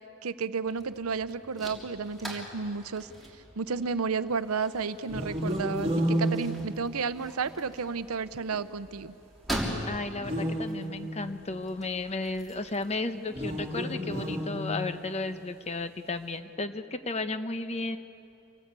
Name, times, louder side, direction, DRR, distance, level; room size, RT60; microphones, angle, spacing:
voice 1, 0.2-3.1 3.6-9.1, right 5 dB, 80° right, 14 dB, 0.7 m, -32 dB
open & close trunk of car, 0.6-13.0, equal, ahead, 3.4 m, -42 dB
sound 1, 5.0-7.4 10.1-11.4 13.3-15.2, equal, 25° right, 2.5 m, -31 dB
voice 2, 9.9-18.0, left 2 dB, 30° left, 9 dB, 0.9 m, -34 dB
26.5 x 18.0 x 8.3 m, 2.7 s
head